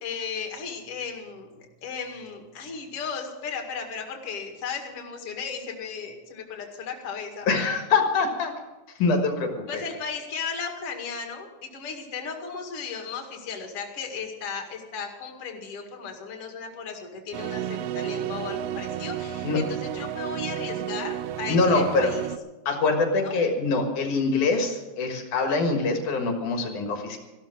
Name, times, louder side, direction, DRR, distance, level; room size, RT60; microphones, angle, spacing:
voice 1, 0.0-7.5 9.7-22.3 23.2-23.4, left 5 dB, 50° left, 3 dB, 2.9 m, -35 dB
voice 2, 7.5-8.5 9.0-9.8 19.4-19.6 21.5-22.1 22.7-27.2, left 3 dB, 75° left, 4 dB, 3.1 m, -24 dB
sound 1, 17.3-22.4, right 11 dB, 90° right, 1.3 m, -32 dB
15.5 x 12.5 x 6.4 m, 1.1 s
omnidirectional pair, 3.5 m